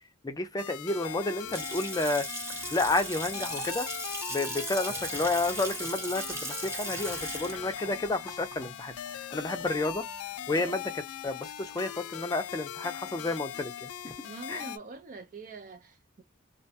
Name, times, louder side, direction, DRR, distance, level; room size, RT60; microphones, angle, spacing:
voice 1, 0.2-3.9 4.3-8.9 9.3-10.0 10.5-14.1 14.5-14.6, left 2 dB, 15° left, 0.5 m, -31 dB
sound 1, 0.6-14.8, left 10 dB, 90° left, 0.4 m, -40 dB
Water tap faucet / Sink (filling or washing) / Splash splatter, 1.3-9.9, right 2 dB, 10° right, 0.8 m, -38 dB
sound 2, 2.5-3.5 4.9-5.8 6.8-8.0 9.4-9.8, right 3 dB, 70° right, 1.1 m, -50 dB
voice 2, 10.5-10.8 14.2-16.2, right 4 dB, 40° right, 0.4 m, -45 dB
2.4 x 2.2 x 2.6 m
head